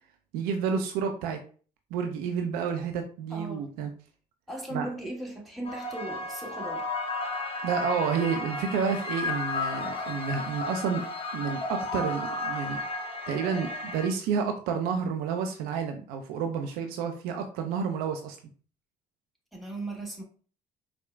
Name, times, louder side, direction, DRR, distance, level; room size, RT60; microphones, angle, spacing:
voice 1, 0.3-1.4 1.9-3.9 4.7-4.9 7.6-11.0 11.3-12.8 13.3-18.4, right 6 dB, 65° right, 5 dB, 0.5 m, -30 dB
voice 2, 3.3-3.7 4.5-6.9 19.5-20.2, right 2 dB, ahead, -1 dB, 1.4 m, -37 dB
sound 1, 5.6-14.1, left 3 dB, 35° left, 0.8 m, -33 dB
4.3 x 2.0 x 2.4 m, 0.40 s
hypercardioid pair, 55°, 17 cm